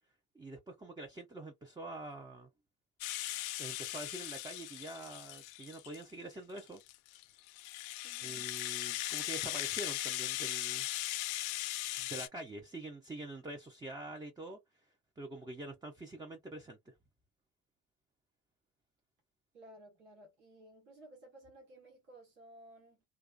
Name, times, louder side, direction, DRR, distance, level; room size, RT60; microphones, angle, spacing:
voice 1, 0.3-2.5 3.6-6.8 8.2-10.9 12.0-14.6 15.2-16.9, right 2 dB, 10° right, 0.5 m, -45 dB
Rattle (instrument), 3.0-6.0 6.6-12.3, left 15 dB, 55° left, 0.5 m, -39 dB
voice 2, 8.0-8.6 19.5-23.0, right 1 dB, 80° right, 1.2 m, -57 dB
2.4 x 2.3 x 2.3 m
hypercardioid pair, 55°, 46 cm